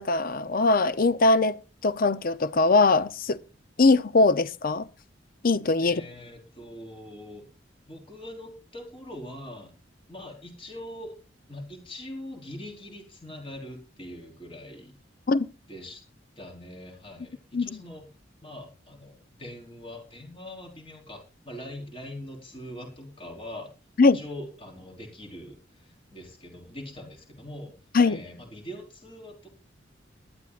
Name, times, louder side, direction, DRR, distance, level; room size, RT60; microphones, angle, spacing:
voice 1, 0.0-1.6 1.8-3.4 3.8-4.8 5.4-6.0 15.3-15.5 17.5-17.8 24.0-24.2 27.9-28.2, left 3 dB, 50° left, 0.7 m, -21 dB
voice 2, 5.8-7.5 7.9-9.7 10.1-11.1 11.5-14.9 15.7-16.0 16.4-18.1 18.4-23.7 24.1-27.7 28.0-29.5, left 1 dB, 30° left, 4.5 m, -42 dB
20.0 x 12.0 x 2.5 m
head